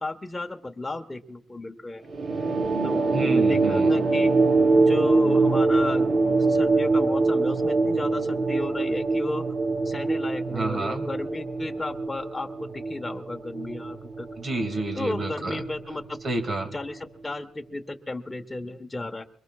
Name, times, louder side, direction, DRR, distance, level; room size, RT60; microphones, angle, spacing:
voice 1, 0.0-2.0 2.8-4.3 4.8-6.1 6.5-9.5 9.8-14.3 15.0-16.2 16.7-19.2, left 2 dB, 15° left, 4 dB, 1.3 m, -33 dB
sound 1, 2.1-17.0, right 3 dB, 55° right, 5.3 m, -24 dB
voice 2, 3.1-3.9 10.5-11.1 14.4-15.6 16.2-16.7, right 2 dB, 40° right, 5 dB, 2.4 m, -30 dB
23.5 x 22.0 x 2.4 m, 0.68 s
cardioid pair, 90°, 0 cm